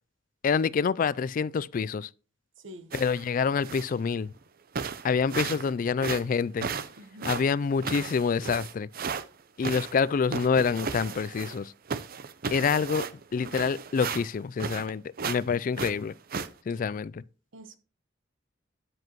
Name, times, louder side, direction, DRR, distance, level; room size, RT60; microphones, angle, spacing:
voice 1, 0.4-2.1 2.9-4.3 5.0-6.7 7.2-8.9 9.6-11.7 12.5-16.1 16.7-17.2, left 5 dB, 45° left, 0.3 m, -27 dB
voice 2, 2.6-2.9 7.0-7.4 16.7-16.8 17.5-17.8, right 1 dB, 75° right, 1.1 m, -47 dB
sound 1, 2.9-3.3 3.6-4.0 4.4-4.5 4.7-5.7 6.0-9.2 9.6-11.6 11.9-14.9 15.2-15.4 15.7-16.5, right 5 dB, 50° right, 0.6 m, -35 dB
9.5 x 7.8 x 3.0 m
head